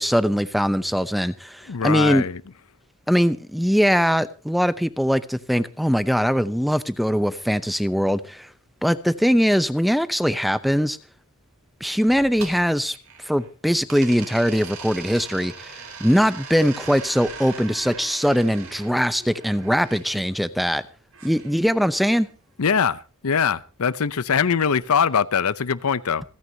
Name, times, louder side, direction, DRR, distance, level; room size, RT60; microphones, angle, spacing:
voice 1, 0.0-2.2 3.1-8.5 8.8-11.0 11.8-13.0 13.2-20.8 21.2-22.3, equal, ahead, 0.6 m, -21 dB
voice 2, 1.7-2.4 22.6-23.0 23.2-26.2, left 6 dB, 75° left, 0.6 m, -22 dB
sound 1, 12.1-13.5 13.9-20.0 21.1-22.3, right 5 dB, 70° right, 4.0 m, -40 dB
27.0 x 9.5 x 2.8 m
head